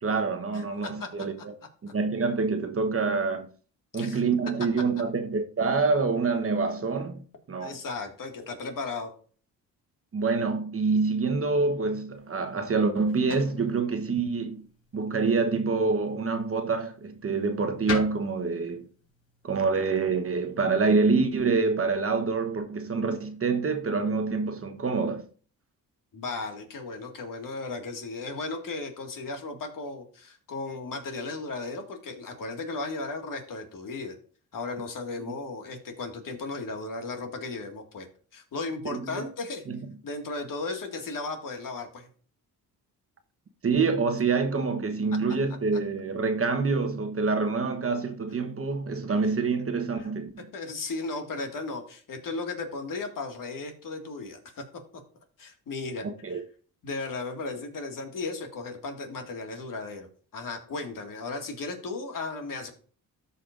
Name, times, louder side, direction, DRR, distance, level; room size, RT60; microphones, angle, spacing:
voice 1, 0.0-1.5 1.9-3.5 3.9-7.2 7.5-7.7 10.1-14.7 14.9-18.9 19.4-25.3 38.9-39.2 39.7-39.8 43.6-50.5 56.0-56.4, right 4 dB, 35° right, 1.1 m, -26 dB
voice 2, 0.5-1.1 3.9-4.2 7.6-9.1 26.1-34.1 34.5-38.1 38.3-39.6 40.0-42.1 45.1-45.2 50.0-50.1 50.5-54.6 55.4-56.4 56.8-60.1 60.3-62.7, left 3 dB, 60° left, 2.0 m, -35 dB
sound 1, 12.1-21.3, left 3 dB, 40° left, 3.6 m, -44 dB
13.5 x 5.6 x 2.5 m
cardioid pair, 75°, 37 cm